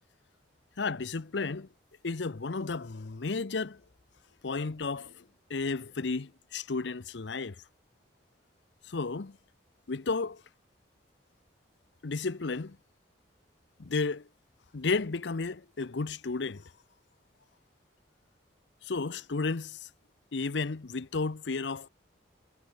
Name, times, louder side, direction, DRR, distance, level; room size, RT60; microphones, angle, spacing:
voice 1, 0.8-1.7 2.0-3.8 4.4-5.2 5.5-7.6 8.9-9.4 9.9-10.4 12.0-12.8 13.8-14.3 14.7-16.6 18.8-19.9 20.3-21.9, left 4 dB, 75° left, 0.7 m, -33 dB
head